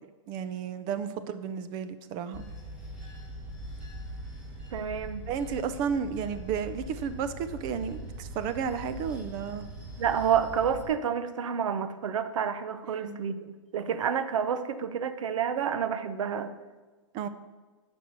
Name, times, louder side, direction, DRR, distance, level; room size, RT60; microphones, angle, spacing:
voice 1, 0.3-2.5 5.3-9.7 12.8-13.2 17.1-17.3, right 7 dB, 25° right, 12 dB, 0.5 m, -33 dB
Bell / Train, 2.3-10.9, right 1 dB, 5° right, 1.8 m, -42 dB
voice 2, 4.7-5.2 10.0-16.5, right 8 dB, 75° right, 11 dB, 0.8 m, -29 dB
8.9 x 5.4 x 6.6 m, 1.3 s
hypercardioid pair, 155°, 16 cm